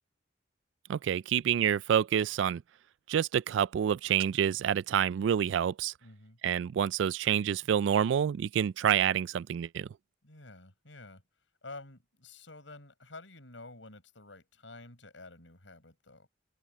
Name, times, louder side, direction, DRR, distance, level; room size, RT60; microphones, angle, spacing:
voice 1, 0.9-2.6 3.1-5.9 6.4-9.9, right 9 dB, 80° right, 0.3 m, -28 dB
voice 2, 6.0-6.4 10.2-11.2 11.6-16.3, left 2 dB, 90° left, 6.9 m, -50 dB
head